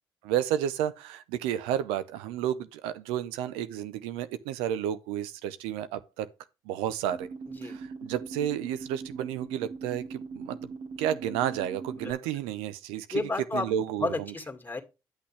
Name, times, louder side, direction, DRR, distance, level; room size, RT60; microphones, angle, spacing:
voice 1, 0.2-6.3 6.7-7.3 7.6-10.7 11.0-14.1, right 10 dB, 90° right, 0.6 m, -31 dB
sound 1, 7.1-12.1, right 4 dB, 65° right, 2.0 m, -40 dB
voice 2, 13.1-14.8, left 3 dB, 20° left, 2.1 m, -32 dB
9.9 x 6.2 x 3.3 m
hypercardioid pair, 50°, 9 cm